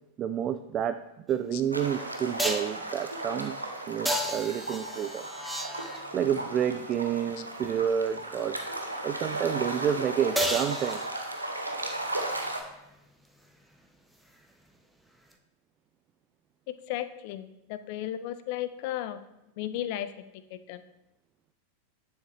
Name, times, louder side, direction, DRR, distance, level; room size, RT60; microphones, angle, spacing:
voice 1, 0.2-5.2 6.1-8.6 9.0-11.1, right 9 dB, 30° right, 11 dB, 0.3 m, -29 dB
sound 1, 1.3-1.4 2.4-2.8 4.0-6.2 10.4-11.5 15.3-15.4, equal, 5° right, 0.8 m, -32 dB
sound 2, 1.7-12.6, right 1 dB, 85° right, 0.9 m, -36 dB
voice 2, 16.9-19.2 19.6-20.2 20.5-20.8, left 12 dB, 45° left, 12 dB, 0.6 m, -34 dB
9.7 x 6.4 x 3.3 m, 0.89 s
figure-of-eight pair, 90°, 0 cm